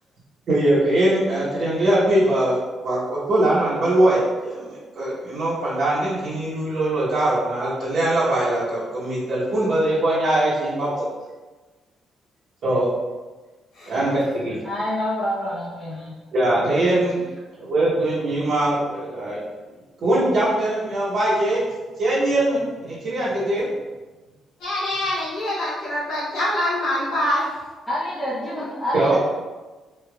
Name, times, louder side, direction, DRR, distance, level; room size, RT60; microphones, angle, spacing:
voice 1, 0.5-11.0 12.6-12.9 13.9-14.6 16.3-17.3 17.7-19.4 20.0-21.6 22.0-23.7 28.9-29.2, right 1 dB, 65° right, -11 dB, 0.9 m, -21 dB
voice 2, 14.6-16.1 27.9-29.2, left 1 dB, 10° left, -10 dB, 0.8 m, -27 dB
voice 3, 24.6-27.5, left 1 dB, 85° left, -9 dB, 1.1 m, -24 dB
3.3 x 2.8 x 2.3 m, 1.2 s
cardioid pair, 90°, 0 cm